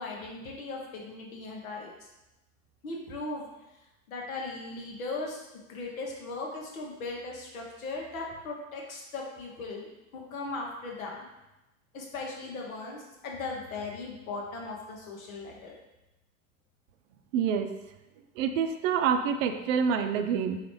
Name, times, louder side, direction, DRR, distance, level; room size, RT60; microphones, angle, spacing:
voice 1, 0.0-1.9 2.8-3.5 4.1-5.4 5.7-11.3 11.9-15.8, left 3 dB, 85° left, -1 dB, 0.9 m, -38 dB
voice 2, 17.3-17.7 18.4-20.6, right 7 dB, 70° right, 7 dB, 0.5 m, -27 dB
3.9 x 2.5 x 3.0 m, 0.97 s
hypercardioid pair, 75°, 40 cm